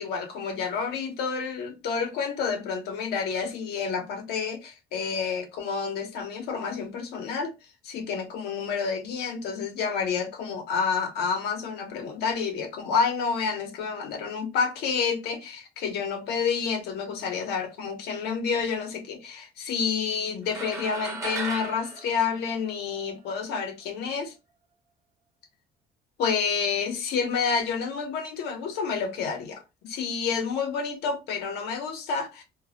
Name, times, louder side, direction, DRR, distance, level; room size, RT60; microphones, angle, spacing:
voice 1, 0.0-7.5 7.8-24.3 26.2-32.4, left 5 dB, 80° left, 0.8 m, -29 dB
sound 1, 20.5-23.1, right 3 dB, 20° right, 0.8 m, -36 dB
2.2 x 2.0 x 2.8 m
cardioid pair, 110°, 17 cm